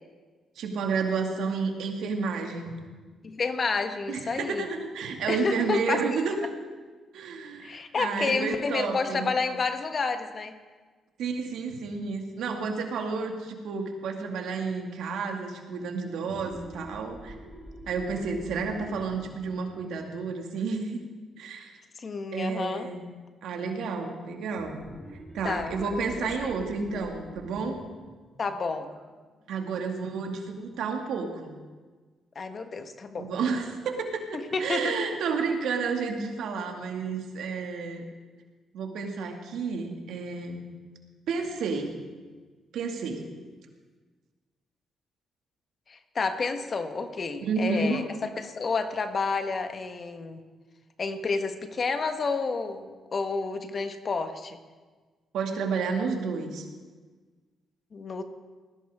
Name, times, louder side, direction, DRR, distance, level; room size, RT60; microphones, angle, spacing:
voice 1, 0.6-2.7 4.1-6.3 7.1-9.3 11.2-17.4 17.9-21.0 21.4-21.8 22.3-23.1 23.4-24.8 25.3-27.8 29.5-31.5 33.2-38.0 38.7-40.6 41.3-41.9 42.7-43.2 47.5-48.0 55.3-56.7, right 5 dB, 75° right, 3 dB, 2.2 m, -31 dB
voice 2, 3.2-4.7 5.3-6.2 7.6-10.5 22.0-22.9 25.4-25.9 26.2-26.5 28.4-28.9 32.3-33.3 34.5-35.0 45.9-48.1 48.4-50.4 51.0-54.6 57.9-58.2, left 4 dB, 50° left, 7 dB, 1.5 m, -30 dB
sound 1, 16.1-21.4 24.5-29.8, right 1 dB, 15° right, 3.7 m, -47 dB
20.0 x 15.5 x 3.7 m, 1.4 s
supercardioid pair, 50°, 0 cm